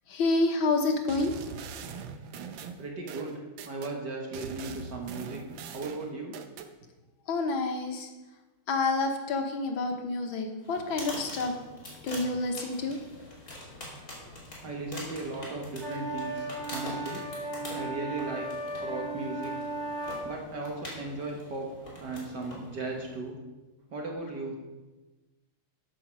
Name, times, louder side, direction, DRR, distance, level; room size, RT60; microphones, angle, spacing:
voice 1, 0.1-1.3 7.3-8.1 8.7-11.6 12.0-13.0, left 3 dB, 75° left, 4 dB, 1.9 m, -28 dB
sound 1, 1.1-3.9 4.3-6.7, right 6 dB, 75° right, 1.5 m, -42 dB
voice 2, 2.8-3.3 3.6-5.4 5.7-6.4 14.6-17.2 17.7-18.5 18.8-19.6 20.2-21.7 22.0-23.4 23.9-24.6, right 2 dB, 55° right, 0 dB, 1.9 m, -36 dB
sound 2, 10.6-23.3, left 1 dB, 45° left, 3.6 m, -45 dB
sound 3, 15.8-20.3, right 2 dB, 30° right, 2.4 m, -36 dB
9.5 x 7.4 x 6.2 m, 1.1 s
omnidirectional pair, 2.3 m